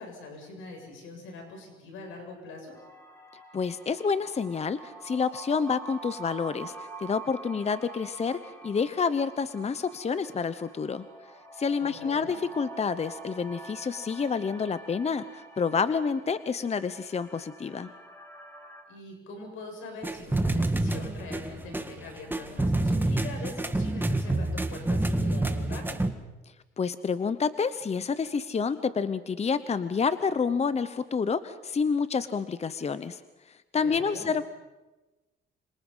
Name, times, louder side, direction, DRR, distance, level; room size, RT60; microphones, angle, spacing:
voice 1, 0.0-2.8 11.8-12.4 18.9-26.0 33.8-34.4, left 3 dB, 90° left, 3 dB, 7.3 m, -43 dB
sound 1, 2.7-18.8, right 3 dB, 10° left, 6.4 m, -46 dB
voice 2, 3.5-11.0 11.6-17.9 26.8-33.2 33.5-34.4, left 5 dB, 35° left, 13 dB, 0.9 m, -29 dB
sound 2, 20.0-26.1, right 2 dB, 10° right, 1.8 m, -28 dB
27.0 x 26.0 x 5.6 m, 1.1 s
cardioid pair, 90°, 20 cm